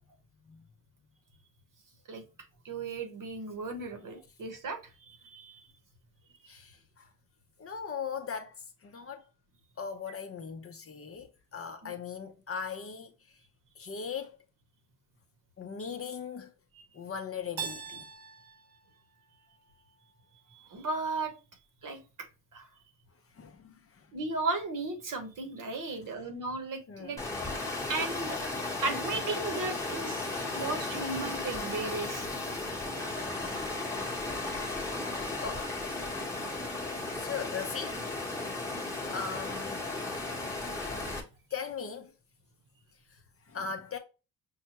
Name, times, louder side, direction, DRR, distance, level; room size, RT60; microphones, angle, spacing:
voice 1, 2.6-5.6 11.8-11.9 20.5-21.3 21.8-22.3 22.5-22.7 24.1-27.2 27.9-28.4 28.8-30.2 30.5-32.3, right 3 dB, 55° right, 1.0 m, -35 dB
voice 2, 6.5-7.1 7.6-9.2 9.8-13.4 13.8-14.4 15.6-16.6 16.9-18.1 23.3-24.1 26.9-27.2 27.7-27.9 29.7-29.9 30.1-30.7 32.2-32.5 32.9-33.0 35.4-35.7 37.1-38.0 39.1-39.9 41.5-42.1 43.1-44.0, left 6 dB, 35° left, 0.6 m, -40 dB
Keyboard (musical), 17.6-20.4, right 7 dB, 75° right, 0.8 m, -43 dB
Water, 27.2-41.2, left 2 dB, 10° left, 0.9 m, -35 dB
5.6 x 2.2 x 2.9 m
cardioid pair, 110°, 38 cm